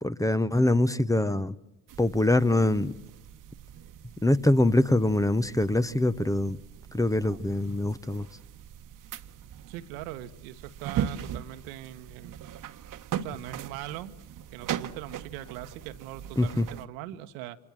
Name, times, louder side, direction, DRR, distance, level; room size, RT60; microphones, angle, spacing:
voice 1, 0.0-1.6 2.0-2.9 4.2-6.6 6.9-8.3 16.4-16.7, left 1 dB, 10° left, 13 dB, 1.0 m, -24 dB
sound 1, 1.9-16.9, right 10 dB, 50° right, 1.4 m, -39 dB
voice 2, 9.7-12.4 13.2-14.1 14.5-17.6, right 13 dB, 70° right, 10 dB, 1.5 m, -41 dB
29.5 x 26.0 x 7.6 m, 0.92 s
hypercardioid pair, 60°, 42 cm